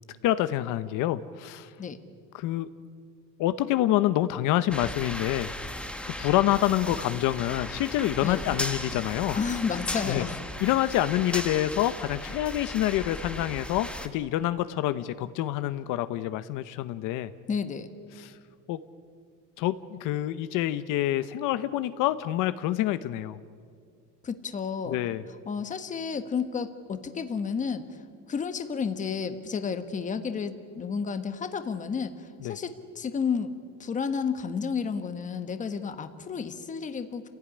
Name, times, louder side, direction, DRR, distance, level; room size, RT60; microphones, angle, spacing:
voice 1, 0.2-1.7 2.3-2.7 3.4-5.5 6.1-9.4 10.0-10.2 10.6-17.3 18.2-18.4 18.7-18.8 19.6-23.4 24.9-25.2 32.4-32.6, left 14 dB, 70° left, 13 dB, 0.9 m, -27 dB
sound 1, 4.7-14.1, left 1 dB, 5° left, 1.0 m, -36 dB
voice 2, 9.3-10.4 17.5-17.9 24.2-25.0 25.5-27.8 28.3-33.5 33.8-37.3, left 6 dB, 25° left, 10 dB, 1.3 m, -31 dB
29.0 x 17.0 x 9.9 m, 2.2 s
cardioid pair, 170°, 33 cm